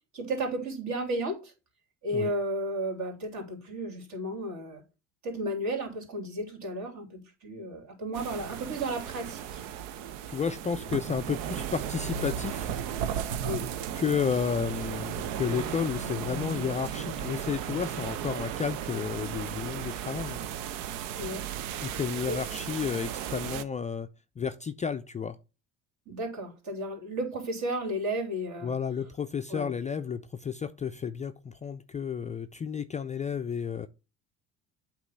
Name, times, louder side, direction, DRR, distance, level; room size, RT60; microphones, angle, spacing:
voice 1, 0.1-1.5 2.0-4.8 5.2-9.6 13.4-13.6 21.1-21.5 22.2-22.4 26.1-28.7 29.5-29.7, right 1 dB, 50° right, 3.2 m, -33 dB
sound 1, 8.1-23.6, right 10 dB, 80° right, 0.7 m, -35 dB
voice 2, 10.3-12.7 13.9-20.4 21.8-24.1 24.4-25.4 28.6-33.9, left 7 dB, 20° left, 0.4 m, -32 dB
sound 2, 10.8-14.0 15.1-18.0, left 2 dB, 25° right, 2.6 m, -45 dB
8.3 x 3.0 x 5.4 m
hypercardioid pair, 75°, 37 cm